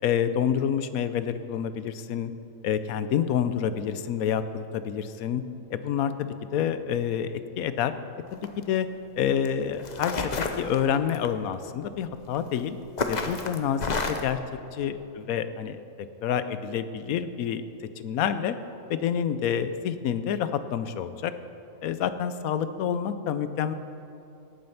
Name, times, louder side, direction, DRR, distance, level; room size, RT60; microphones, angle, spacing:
voice 1, 0.0-2.3 2.6-5.4 5.7-7.9 8.3-8.9 9.2-10.3 10.6-12.8 13.1-13.8 14.1-14.4 14.8-17.6 18.0-18.6 18.9-21.3 21.8-23.7, left 8 dB, 85° left, 12 dB, 1.1 m, -28 dB
sound 1, 8.3-8.6 9.4-9.5 9.8-11.3 12.3-12.6 13.0-14.3, left 4 dB, 40° left, 0.7 m, -29 dB
17.5 x 7.7 x 5.6 m, 2.7 s
omnidirectional pair, 1.5 m